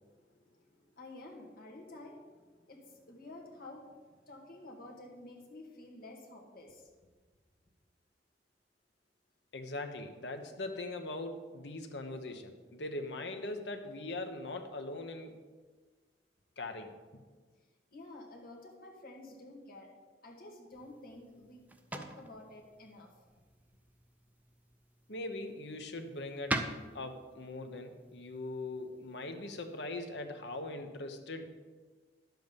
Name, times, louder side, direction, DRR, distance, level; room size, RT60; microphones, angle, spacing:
voice 1, 0.0-6.9 17.5-17.6 17.9-19.9 20.2-23.1, left 2 dB, 55° left, 0 dB, 2.0 m, -51 dB
voice 2, 9.5-15.4 16.6-16.9 25.1-26.6 26.9-31.5, left 2 dB, 75° left, 6 dB, 1.1 m, -41 dB
sound 1, 20.7-29.9, right 1 dB, 10° right, 0.6 m, -44 dB
11.0 x 7.7 x 5.3 m, 1.4 s
head